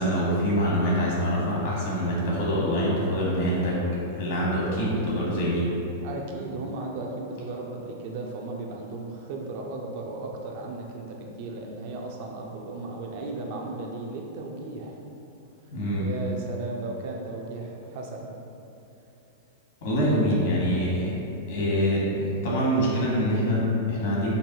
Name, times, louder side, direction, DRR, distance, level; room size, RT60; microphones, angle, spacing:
voice 1, 0.0-3.8 4.1-5.7 15.7-16.0 19.8-21.1 21.5-24.3, equal, 70° left, -5 dB, 1.3 m, -25 dB
voice 2, 6.0-15.0 16.0-18.4, right 2 dB, 55° right, 0 dB, 0.6 m, -35 dB
5.2 x 2.2 x 2.9 m, 2.8 s
hypercardioid pair, 110°, 0 cm